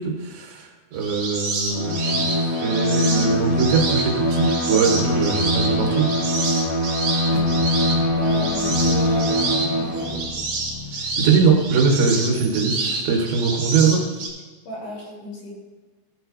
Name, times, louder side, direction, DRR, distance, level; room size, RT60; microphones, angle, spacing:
voice 1, 0.0-6.2 11.0-14.0, right 5 dB, 85° right, 1 dB, 3.7 m, -22 dB
sound 1, 0.9-14.3, right 3 dB, 55° right, 4.4 m, -28 dB
Bowed string instrument, 1.7-10.3, equal, 45° left, 2.4 m, -23 dB
sound 2, 7.2-12.6, left 4 dB, 85° left, 3.3 m, -38 dB
voice 2, 7.8-10.2 14.7-15.5, left 1 dB, 65° left, -6 dB, 5.7 m, -35 dB
16.5 x 7.7 x 2.7 m, 1.3 s
omnidirectional pair, 5.0 m